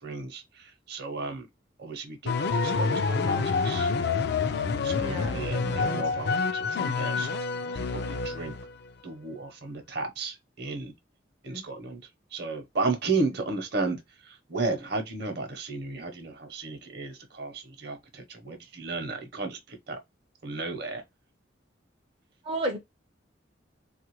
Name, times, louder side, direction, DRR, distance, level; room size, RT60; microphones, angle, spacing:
voice 1, 0.0-1.5 1.8-3.9 4.8-7.4 7.7-8.5 9.0-10.9 11.4-12.0 12.3-20.0 20.4-21.0, right 3 dB, 55° right, 0.8 m, -34 dB
sound 1, 2.3-8.7, left 4 dB, 55° left, 0.3 m, -27 dB
voice 2, 5.0-6.0 11.5-11.6 22.4-22.8, right 1 dB, 30° right, 0.4 m, -34 dB
3.3 x 2.4 x 2.9 m
head